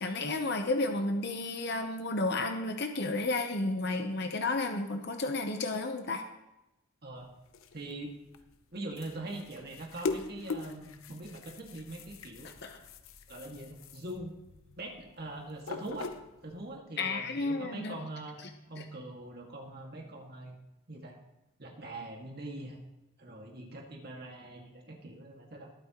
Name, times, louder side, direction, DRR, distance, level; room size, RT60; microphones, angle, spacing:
voice 1, 0.0-6.2 12.6-12.8 17.0-18.0, left 2 dB, 50° left, 5 dB, 0.9 m, -32 dB
sound 1, 7.2-16.7, left 4 dB, 75° left, 0.7 m, -42 dB
voice 2, 7.7-8.2 8.7-12.5 13.3-14.3 14.8-16.1 16.4-18.4 18.7-20.6 20.9-21.2 21.6-22.8 23.2-25.7, right 2 dB, 50° right, 1 dB, 2.0 m, -43 dB
20.5 x 8.7 x 3.0 m, 0.94 s
head